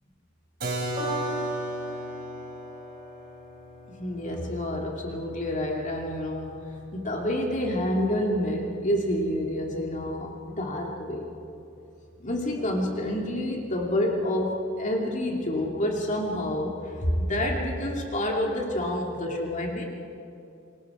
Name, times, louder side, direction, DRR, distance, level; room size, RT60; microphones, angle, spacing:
Keyboard (musical), 0.6-6.2, equal, 50° right, 4.4 m, -36 dB
Piano, 1.0-7.5 8.4-8.5, right 2 dB, 30° right, 7.3 m, -40 dB
voice 1, 4.0-6.5 6.9-11.3 12.2-16.8 17.0-19.9, left 1 dB, 40° left, 0 dB, 2.5 m, -28 dB
27.5 x 22.0 x 4.9 m, 2.6 s
head